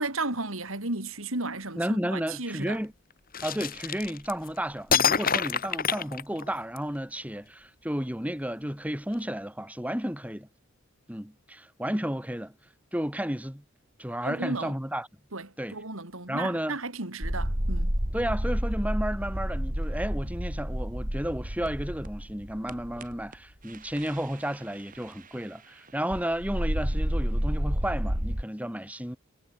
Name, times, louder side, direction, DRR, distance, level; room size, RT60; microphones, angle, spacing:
voice 1, 0.0-2.8 14.2-14.7 15.3-17.9, right 2 dB, 70° right, 4.5 m, -34 dB
voice 2, 1.8-2.9 3.4-10.5 11.1-12.5 12.9-13.6 14.0-15.1 15.6-15.8 16.3-16.8 18.1-29.2, equal, 5° right, 5.1 m, -32 dB
sound 1, 3.3-4.5 4.9-6.8, left 7 dB, 40° left, 7.5 m, -26 dB
sound 2, 17.2-23.3 23.7-24.4 24.9-25.0 26.1-28.4, equal, 40° right, 5.3 m, -30 dB
head